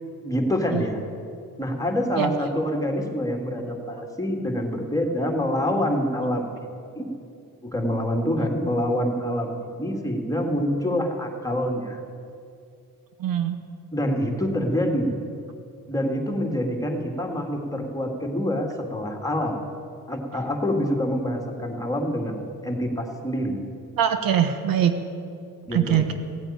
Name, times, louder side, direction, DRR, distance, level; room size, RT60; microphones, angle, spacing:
voice 1, 0.2-1.0 1.6-6.5 7.0-7.1 7.6-12.0 13.9-15.1 15.9-19.5 20.1-22.4 22.6-23.6 25.6-26.0, equal, 10° left, 1 dB, 2.4 m, -26 dB
voice 2, 13.2-13.6 24.0-24.9 25.7-26.1, right 9 dB, 65° right, 8 dB, 1.2 m, -22 dB
16.5 x 8.9 x 8.9 m, 2.5 s
cardioid pair, 90°, 36 cm